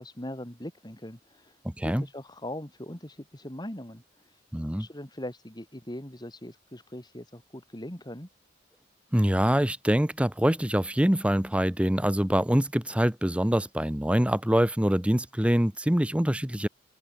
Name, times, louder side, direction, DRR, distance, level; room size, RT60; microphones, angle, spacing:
voice 1, 0.0-8.3, left 1 dB, 20° left, 3.4 m, -41 dB
voice 2, 1.6-2.0 4.5-4.9 9.1-16.7, equal, 5° right, 0.9 m, -24 dB
open air
head